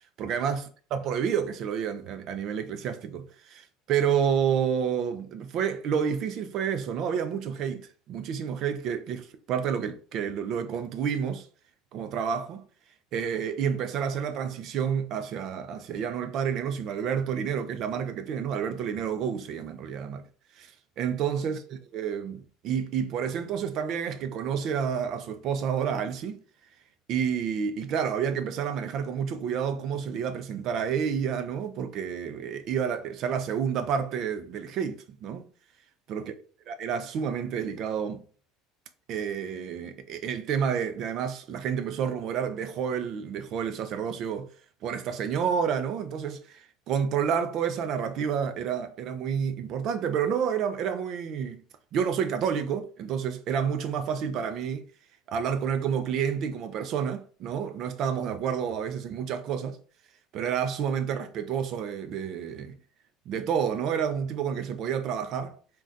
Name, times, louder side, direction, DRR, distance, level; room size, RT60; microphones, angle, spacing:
voice 1, 0.2-0.6 0.9-11.5 11.9-12.7 13.1-20.2 20.6-21.6 21.9-26.4 27.1-35.5 36.1-36.2 36.7-38.2 39.1-44.5 44.8-51.6 51.9-54.8 55.3-59.8 60.3-62.8 63.3-65.6, right 7 dB, 40° right, 0.4 m, -29 dB
2.4 x 2.2 x 3.8 m
cardioid pair, 175°, 0 cm